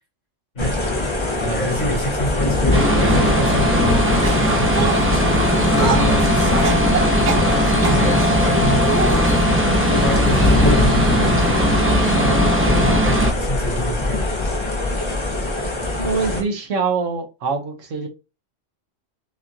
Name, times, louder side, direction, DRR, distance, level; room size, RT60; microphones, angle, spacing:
sound 1, 0.6-16.4, left 2 dB, 25° left, 0.9 m, -23 dB
voice 1, 1.4-6.8 7.4-9.5 9.9-14.3, left 1 dB, 65° left, 3.2 m, -27 dB
sound 2, 2.7-13.3, equal, 10° right, 0.8 m, -18 dB
sound 3, 4.2-8.1 8.8-9.5 10.3-10.5 10.8-10.9 11.9-12.0, right 6 dB, 45° right, 0.6 m, -27 dB
voice 2, 16.0-18.1, right 4 dB, 85° right, 1.4 m, -24 dB
6.3 x 3.0 x 2.5 m
omnidirectional pair, 1.3 m